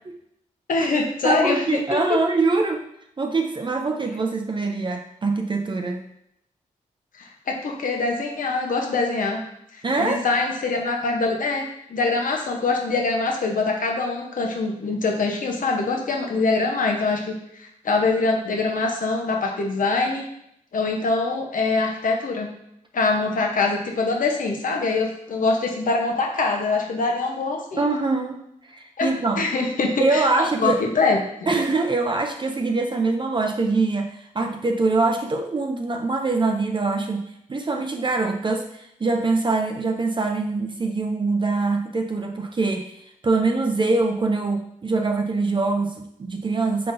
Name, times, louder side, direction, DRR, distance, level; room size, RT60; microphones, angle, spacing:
voice 1, 0.7-2.2 7.2-9.4 9.7-11.6 11.9-20.2 20.7-22.5 22.9-27.9 29.0-29.1 29.4-30.2 30.6-31.5, left 3 dB, 65° left, 1 dB, 0.9 m, -24 dB
voice 2, 1.2-2.9 3.2-6.1 9.8-10.2 27.8-28.4 28.7-29.5 30.0-30.8 31.5-46.9, right 3 dB, 35° right, 3 dB, 0.5 m, -24 dB
5.5 x 3.7 x 2.6 m, 0.76 s
cardioid pair, 55°, 15 cm